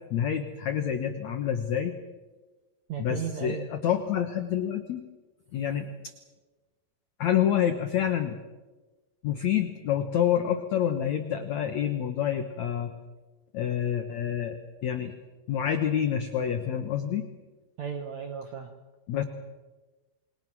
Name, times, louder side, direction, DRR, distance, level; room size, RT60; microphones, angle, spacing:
voice 1, 0.1-1.9 3.0-5.0 5.5-6.1 7.2-8.4 9.2-12.9 13.5-15.1 15.5-17.3 19.1-19.2, left 9 dB, 85° left, 7 dB, 1.6 m, -28 dB
voice 2, 2.9-3.7 17.8-18.8, right 7 dB, 80° right, 5 dB, 1.6 m, -35 dB
27.5 x 22.0 x 6.2 m, 1.2 s
omnidirectional pair, 5.1 m